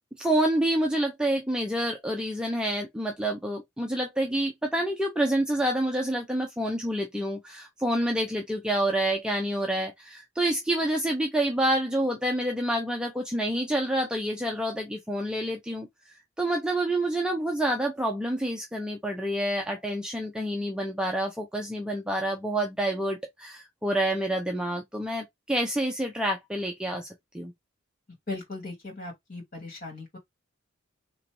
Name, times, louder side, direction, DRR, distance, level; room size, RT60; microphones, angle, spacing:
voice 1, 0.2-15.9 16.4-27.1 27.3-27.5, right 1 dB, 5° right, 0.6 m, -28 dB
voice 2, 28.3-30.2, left 2 dB, 45° left, 2.6 m, -38 dB
4.0 x 3.0 x 3.1 m
head